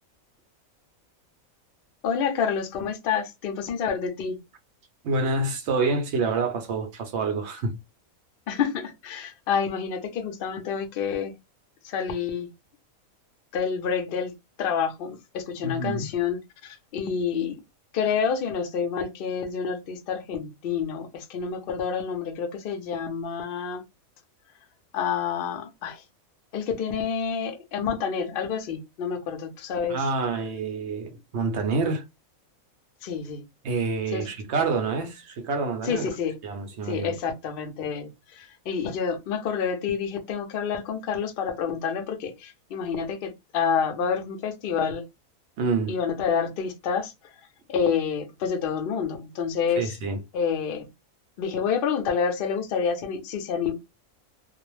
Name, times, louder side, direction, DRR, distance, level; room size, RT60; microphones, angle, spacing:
voice 1, 2.0-4.4 8.5-11.3 11.8-12.5 13.5-14.3 14.6-17.6 17.9-23.8 24.9-26.0 26.5-30.0 33.0-33.4 34.1-34.2 35.9-36.4 36.8-45.0 45.9-47.1 47.7-49.9 50.3-50.9 51.4-53.7, left 6 dB, 60° left, 0.6 m, -28 dB
voice 2, 5.0-7.8 15.6-16.1 29.9-32.0 33.6-36.1 36.4-37.1 45.6-46.0 49.8-50.2, right 3 dB, 65° right, 0.7 m, -27 dB
2.3 x 2.0 x 3.0 m
omnidirectional pair, 1.5 m